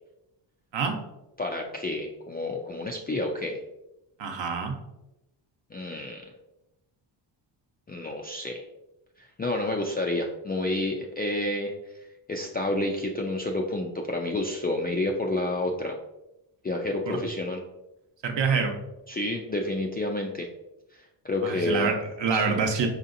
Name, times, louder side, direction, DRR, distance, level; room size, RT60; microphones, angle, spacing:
voice 1, 1.4-3.6 5.7-6.2 7.9-8.6 9.2-11.7 12.3-16.0 16.6-17.6 19.1-20.5 20.9-21.9 22.3-22.6, left 2 dB, 20° left, 0 dB, 0.3 m, -29 dB
voice 2, 4.2-4.7 17.0-17.2 18.2-18.7 21.4-22.9, right 5 dB, 60° right, 3 dB, 0.9 m, -26 dB
4.8 x 2.7 x 2.6 m, 0.93 s
cardioid pair, 75°, 49 cm